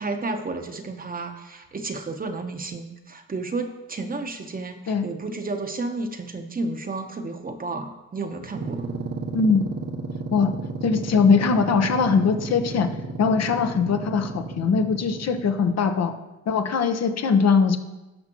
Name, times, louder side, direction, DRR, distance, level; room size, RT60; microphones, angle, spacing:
voice 1, 0.0-8.8, right 3 dB, 30° right, 6 dB, 1.0 m, -32 dB
sound 1, 8.4-15.8, right 3 dB, 55° right, 1.1 m, -33 dB
voice 2, 10.8-12.9 13.2-16.1 16.5-17.8, left 5 dB, 60° left, 6 dB, 1.0 m, -21 dB
17.0 x 5.9 x 3.0 m, 1.0 s
cardioid pair, 90°, 30 cm